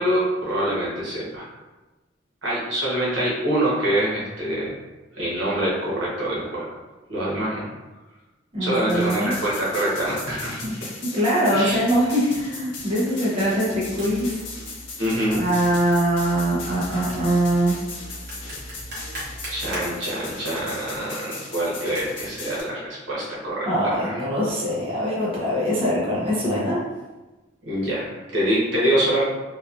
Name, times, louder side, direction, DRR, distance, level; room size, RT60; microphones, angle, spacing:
voice 1, 0.0-1.5 2.4-4.7 5.2-6.7 7.1-7.7 8.6-10.7 11.5-11.8 15.0-15.4 19.5-23.7 24.0-24.2 27.6-29.2, right 1 dB, 80° right, -6 dB, 1.0 m, -25 dB
voice 2, 8.5-9.3 11.0-14.4 15.3-17.8 23.7-26.8, equal, 30° right, -6 dB, 0.5 m, -22 dB
sound 1, 8.9-22.6, left 3 dB, 70° left, 0.6 m, -38 dB
sound 2, 13.8-19.8, equal, 60° right, 1.0 m, -39 dB
2.9 x 2.2 x 2.4 m, 1.1 s
head